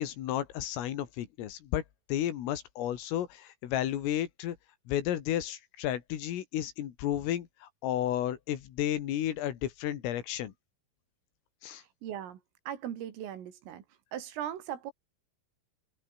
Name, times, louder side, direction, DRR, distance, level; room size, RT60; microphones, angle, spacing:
voice 1, 0.0-1.8 2.1-4.6 4.9-10.5 11.6-11.8, left 11 dB, 85° left, 4.9 m, -32 dB
voice 2, 12.0-12.4 12.7-13.8 14.1-14.9, right 10 dB, 80° right, 5.3 m, -38 dB
omnidirectional pair, 5.8 m